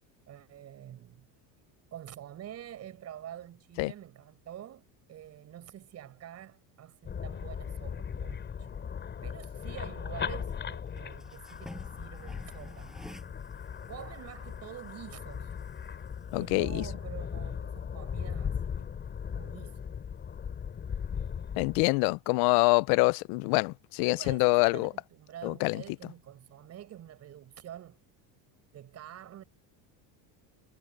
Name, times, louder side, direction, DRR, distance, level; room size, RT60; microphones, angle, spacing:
voice 1, 0.2-1.3 1.9-8.9 9.2-13.0 13.9-15.6 15.9-16.1 16.3-18.9 19.3-19.8 24.1-28.0 28.7-29.4, right 11 dB, 35° right, 6.5 m, -47 dB
sound 1, 7.0-21.9, left 7 dB, 25° left, 4.6 m, -38 dB
sound 2, 8.9-20.2, equal, ahead, 7.1 m, -55 dB
voice 2, 16.3-16.8 21.6-24.9 25.4-25.8, left 26 dB, 55° left, 0.5 m, -25 dB
cardioid pair, 165°, 46 cm